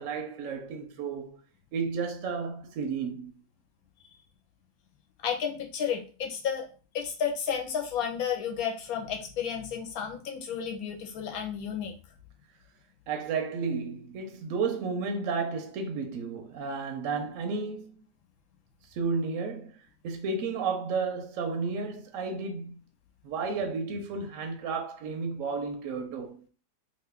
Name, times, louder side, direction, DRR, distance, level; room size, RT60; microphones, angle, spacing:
voice 1, 0.0-1.4 1.7-3.3 13.1-18.0 18.9-22.8 23.2-26.5, right 4 dB, 70° right, 0.8 m, -32 dB
voice 2, 5.2-6.7 6.9-11.9, left 7 dB, 70° left, 1.1 m, -32 dB
2.8 x 2.5 x 3.4 m
omnidirectional pair, 1.7 m